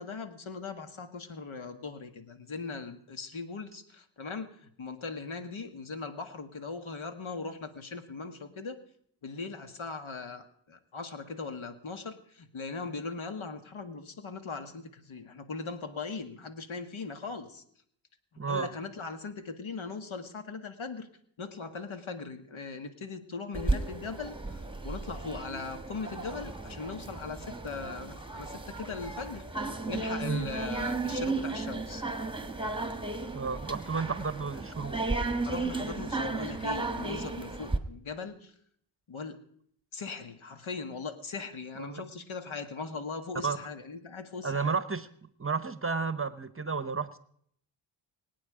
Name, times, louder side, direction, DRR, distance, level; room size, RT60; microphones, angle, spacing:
voice 1, 0.0-8.8 9.2-17.6 18.5-21.1 21.4-29.4 29.9-32.0 35.5-38.5 39.1-39.4 39.9-44.8, left 4 dB, 80° left, 8 dB, 1.8 m, -39 dB
voice 2, 18.4-18.7 30.2-30.5 33.3-35.0 41.8-42.0 43.4-43.6 44.4-45.1 45.4-47.2, right 5 dB, 25° right, 14 dB, 0.9 m, -32 dB
sound 1, 23.5-37.8, right 3 dB, 10° right, 1.5 m, -34 dB
24.5 x 8.8 x 4.9 m, 0.64 s
cardioid pair, 65°, 48 cm